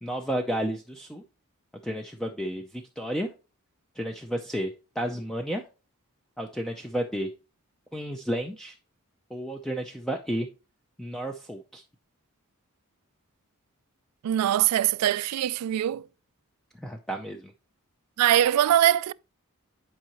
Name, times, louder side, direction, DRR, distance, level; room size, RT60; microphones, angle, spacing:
voice 1, 0.0-1.2 1.8-3.3 4.0-5.6 6.4-7.3 7.9-8.8 9.3-10.5 11.0-11.8 16.7-17.5, equal, ahead, 0.5 m, -32 dB
voice 2, 14.2-16.0 18.2-19.1, right 11 dB, 90° right, 0.3 m, -22 dB
10.5 x 4.7 x 3.0 m
head